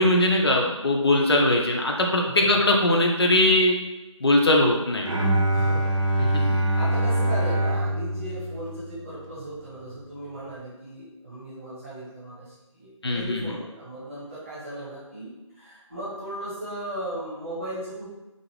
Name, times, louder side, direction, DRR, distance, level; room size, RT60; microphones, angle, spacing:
voice 1, 0.0-3.8 4.2-5.1 6.2-6.6 13.0-13.4, left 1 dB, 55° left, 0 dB, 0.4 m, -21 dB
voice 2, 2.2-2.6 5.5-6.0 6.2-12.4 12.7-18.1, right 1 dB, 25° right, -8 dB, 0.9 m, -37 dB
Bowed string instrument, 5.1-9.2, right 1 dB, 80° right, 0.7 m, -24 dB
2.4 x 2.1 x 3.1 m, 1.0 s
figure-of-eight pair, 165°, 17 cm